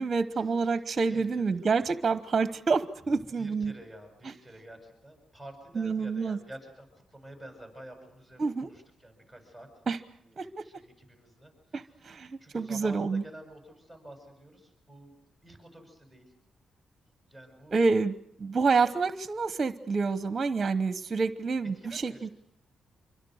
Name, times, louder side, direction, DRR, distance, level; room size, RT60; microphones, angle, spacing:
voice 1, 0.0-3.7 4.2-4.3 5.7-6.4 8.4-8.7 9.9-10.0 10.4-10.5 11.7-13.2 17.7-18.1 18.4-22.3, right 4 dB, 35° right, 12 dB, 1.0 m, -28 dB
voice 2, 1.1-1.4 3.0-9.7 10.2-11.8 12.4-15.1 15.4-16.3 17.3-17.8 21.7-22.3, right 1 dB, 10° left, 3 dB, 7.6 m, -49 dB
27.0 x 24.0 x 6.5 m, 0.72 s
cardioid pair, 100°, 0 cm